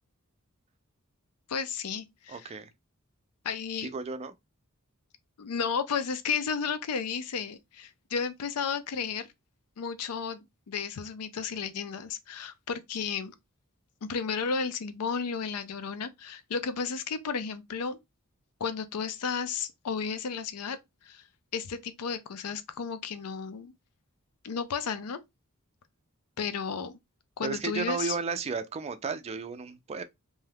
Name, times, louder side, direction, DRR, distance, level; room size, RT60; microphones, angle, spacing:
voice 1, 1.5-2.6 3.4-3.9 5.4-9.3 9.8-13.3 14.0-18.0 18.6-20.8 21.0-21.2 21.5-23.7 24.4-25.2 26.4-27.0 27.4-28.2, left 6 dB, 85° left, 0.5 m, -33 dB
voice 2, 2.3-2.7 3.8-4.3 27.4-30.0, right 5 dB, 30° right, 0.3 m, -33 dB
2.7 x 2.2 x 3.4 m
head